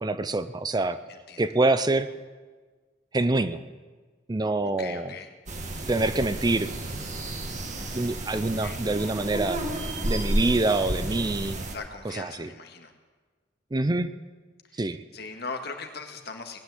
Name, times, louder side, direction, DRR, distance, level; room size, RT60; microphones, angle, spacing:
voice 1, 0.0-1.0 1.4-2.1 3.1-3.6 4.3-5.2 5.9-6.7 7.9-9.6 10.0-11.6 12.0-12.5 13.7-14.1 14.8-15.0, right 2 dB, 25° right, 13 dB, 0.5 m, -25 dB
voice 2, 1.1-1.4 4.8-5.3 8.3-8.8 11.7-12.9 14.7-16.6, left 4 dB, 60° left, 5 dB, 1.8 m, -40 dB
sound 1, 5.5-11.8, right 1 dB, 45° right, 1.9 m, -31 dB
18.0 x 10.0 x 7.9 m, 1.4 s
head